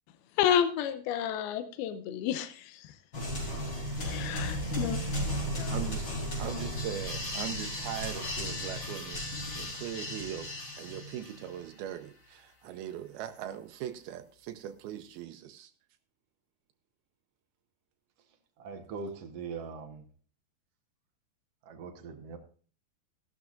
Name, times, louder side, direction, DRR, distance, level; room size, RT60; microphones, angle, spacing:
voice 1, 0.4-2.9 3.5-3.7 4.0-5.0 5.5-5.8, left 9 dB, 90° left, 10 dB, 2.7 m, -31 dB
sound 1, 3.1-11.6, equal, 30° left, 4.1 m, -35 dB
voice 2, 5.7-6.1 6.4-15.7, right 11 dB, 85° right, 7 dB, 2.5 m, -40 dB
voice 3, 18.6-20.0 21.6-22.4, right 5 dB, 65° right, 5 dB, 1.6 m, -41 dB
15.5 x 12.0 x 2.5 m, 0.40 s
omnidirectional pair, 4.4 m